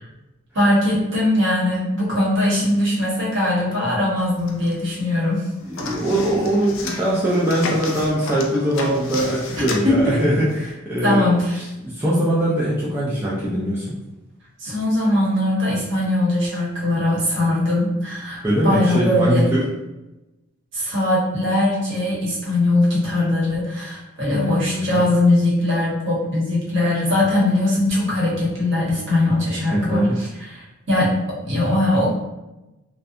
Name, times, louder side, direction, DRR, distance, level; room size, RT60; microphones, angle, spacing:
voice 1, 0.5-5.4 9.9-10.2 11.0-11.6 14.6-19.5 20.7-31.1 31.4-32.1, left 1 dB, 55° right, -6 dB, 0.9 m, -20 dB
sound 1, 4.2-5.1 5.3-10.7, left 3 dB, 60° left, 0.4 m, -32 dB
voice 2, 5.6-11.3 11.5-14.0 18.4-19.7 24.3-25.0 29.7-30.2, right 1 dB, 10° right, -8 dB, 0.3 m, -21 dB
2.6 x 2.2 x 2.4 m, 1.0 s
head